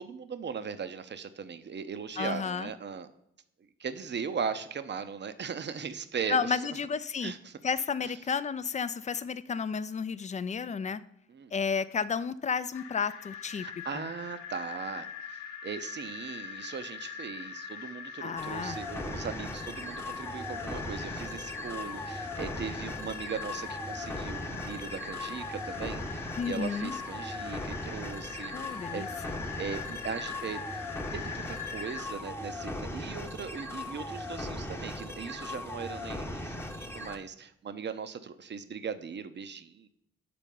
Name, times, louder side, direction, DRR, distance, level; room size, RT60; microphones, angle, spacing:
voice 1, 0.0-3.1 3.8-6.6 7.2-7.6 11.3-11.5 13.6-15.1 15.6-29.1 29.6-30.6 31.1-39.9, right 6 dB, 35° right, 11 dB, 0.7 m, -39 dB
voice 2, 2.2-2.7 6.3-7.3 7.6-11.0 11.5-13.7 13.9-14.1 18.2-18.8 26.4-27.0 28.5-29.4, left 6 dB, 25° left, 15 dB, 0.4 m, -32 dB
sound 1, 12.7-32.0, left 7 dB, 65° left, 0.7 m, -43 dB
sound 2, 18.4-37.2, left 1 dB, 5° left, 0.9 m, -38 dB
6.8 x 4.5 x 5.3 m, 0.78 s
hypercardioid pair, 40°, 32 cm